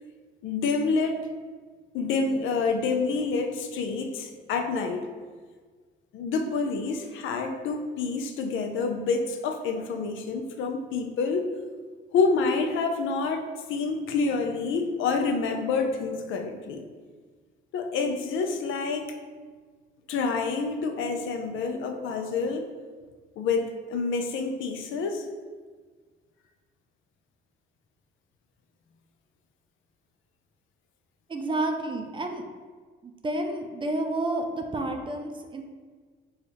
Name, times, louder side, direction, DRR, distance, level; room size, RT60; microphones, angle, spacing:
voice 1, 0.4-1.2 1.9-5.1 6.1-11.5 12.1-13.4 13.7-16.8 17.7-19.1 20.1-22.6 23.4-25.3, left 4 dB, 80° left, 5 dB, 0.5 m, -28 dB
voice 2, 31.3-32.4 33.0-35.6, right 2 dB, 25° right, 4 dB, 0.4 m, -30 dB
3.3 x 2.3 x 4.1 m, 1.5 s
cardioid pair, 90°, 20 cm